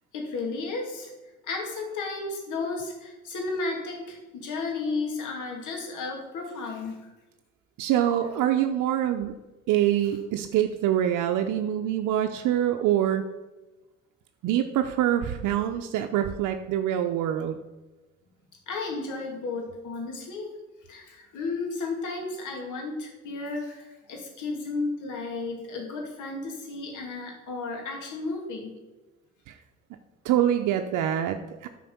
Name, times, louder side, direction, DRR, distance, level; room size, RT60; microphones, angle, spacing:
voice 1, 0.1-1.1 1.4-7.1 18.7-20.5 20.9-28.7, left 3 dB, 85° left, 1 dB, 2.5 m, -33 dB
voice 2, 7.8-9.4 9.7-13.2 14.4-17.6 29.5-29.6 30.2-31.7, right 11 dB, 90° right, 6 dB, 0.6 m, -25 dB
9.3 x 4.6 x 7.0 m, 1.1 s
cardioid pair, 90°, 30 cm